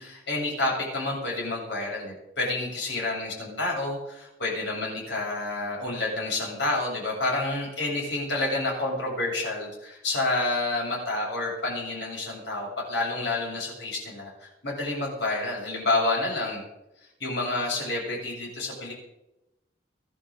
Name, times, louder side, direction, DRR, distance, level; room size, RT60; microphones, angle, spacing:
voice 1, 0.0-16.6 17.2-18.9, left 2 dB, 80° left, -3 dB, 7.6 m, -29 dB
24.5 x 11.5 x 3.9 m, 0.93 s
head